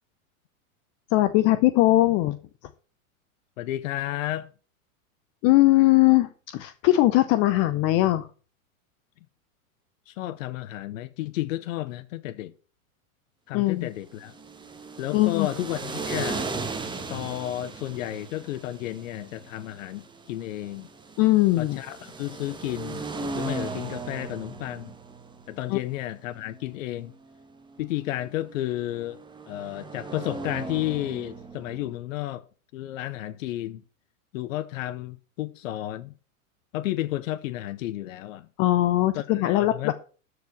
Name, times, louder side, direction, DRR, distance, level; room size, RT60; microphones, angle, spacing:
voice 1, 1.1-2.4 5.4-8.3 13.5-13.9 15.1-15.5 21.2-21.8 25.7-25.8 38.6-39.9, left 17 dB, 35° left, 0.7 m, -20 dB
voice 2, 3.6-4.5 10.1-12.5 13.5-14.3 15.0-16.4 17.1-20.9 21.6-23.0 23.3-24.9 25.5-27.1 27.8-29.2 29.5-32.5 32.7-33.8 34.3-36.1 36.7-38.5 39.1-39.9, left 14 dB, 65° left, 0.8 m, -32 dB
sound 1, 14.1-32.0, right 3 dB, 10° right, 1.3 m, -38 dB
13.0 x 4.8 x 6.4 m
hypercardioid pair, 120°, 43 cm